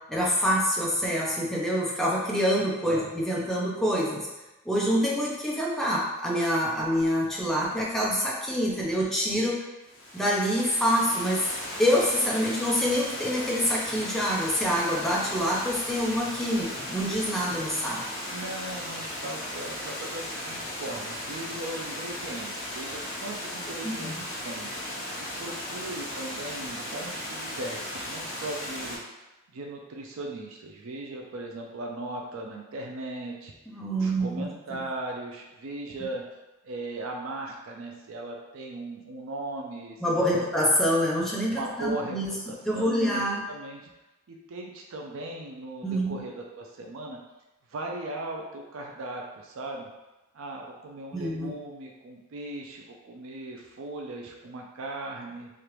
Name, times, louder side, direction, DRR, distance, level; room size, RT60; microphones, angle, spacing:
voice 1, 0.1-4.3 4.7-9.6 10.1-11.4 11.8-18.0 23.8-24.1 33.7-34.4 34.7-34.8 40.0-42.3 42.6-43.5 45.8-46.2 51.1-51.5, equal, ahead, -5 dB, 0.5 m, -26 dB
Water, 9.8-29.0, left 1 dB, 45° left, 1.0 m, -36 dB
voice 2, 18.2-24.7 25.2-29.0 29.5-33.5 33.9-36.2 36.6-40.5 41.5-42.2 42.5-43.9 44.3-47.2 47.7-49.9 50.3-55.5, right 2 dB, 70° right, 0 dB, 0.4 m, -38 dB
3.2 x 2.4 x 3.0 m, 1.1 s
head